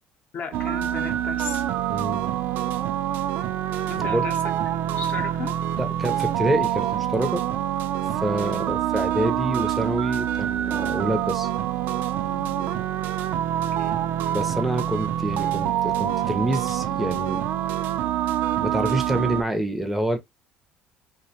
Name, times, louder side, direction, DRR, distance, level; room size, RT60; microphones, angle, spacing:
voice 1, 0.3-1.7 3.9-4.5 4.9-5.6 8.3-8.8 12.2-12.8 13.4-14.1, left 6 dB, 50° left, 0.7 m, -37 dB
sound 1, 0.5-19.4, right 11 dB, 65° right, 0.3 m, -26 dB
voice 2, 1.9-2.3 4.0-4.2 5.8-7.4 8.1-11.5 14.3-17.4 18.6-20.2, right 1 dB, 5° right, 0.5 m, -27 dB
2.5 x 2.1 x 2.7 m
cardioid pair, 110°, 4 cm